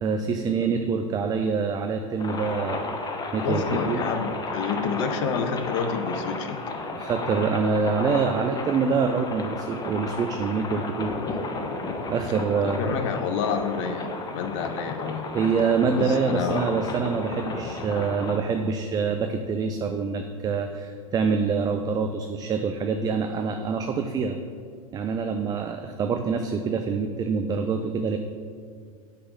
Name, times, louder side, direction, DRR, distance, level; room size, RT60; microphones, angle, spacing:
voice 1, 0.0-4.0 6.9-11.1 12.1-13.0 15.3-24.4 24.9-28.2, right 5 dB, 20° right, 6 dB, 0.3 m, -26 dB
sound 1, 2.2-18.4, left 3 dB, 20° left, 0.7 m, -33 dB
voice 2, 3.4-6.7 12.6-15.3 15.9-16.8, left 5 dB, 55° left, 7 dB, 0.7 m, -29 dB
7.0 x 3.7 x 5.2 m, 2.1 s
hypercardioid pair, 100°, 18 cm